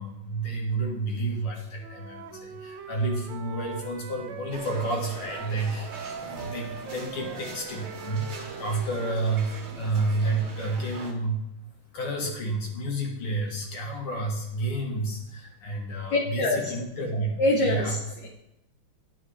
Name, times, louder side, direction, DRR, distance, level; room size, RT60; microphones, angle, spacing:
voice 1, 0.0-5.9 6.2-8.3 8.6-11.4 11.9-17.3 17.6-18.0, right 2 dB, 85° left, -1 dB, 2.3 m, -30 dB
Wind instrument woodwind instrument, 1.8-5.6 5.9-9.9, right 7 dB, 75° right, 1.2 m, -42 dB
sound 1, 4.5-11.1, right 3 dB, 45° right, 1.0 m, -42 dB
voice 2, 16.1-16.7 17.4-18.3, left 2 dB, 65° left, -1 dB, 1.3 m, -25 dB
10.5 x 4.9 x 3.2 m, 0.88 s
omnidirectional pair, 2.3 m